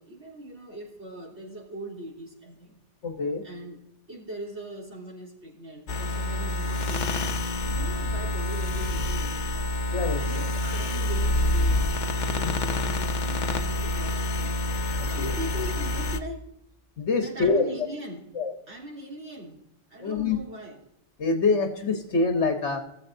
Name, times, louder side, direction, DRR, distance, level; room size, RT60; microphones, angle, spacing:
voice 1, 0.0-2.8 3.4-3.8 4.1-9.7 10.2-11.9 12.3-14.5 15.1-16.5 17.2-18.2 18.7-19.6 19.9-20.8, right 1 dB, 70° right, -5 dB, 3.5 m, -40 dB
voice 2, 3.0-3.4 9.9-10.2 12.4-12.5 15.0-15.3 17.0-17.7 18.3-18.5 20.0-20.4 21.2-22.8, left 4 dB, 70° left, 5 dB, 1.3 m, -25 dB
sound 1, 5.9-16.2, left 1 dB, 45° left, 0.7 m, -27 dB
18.0 x 7.5 x 2.6 m, 0.83 s
omnidirectional pair, 1.2 m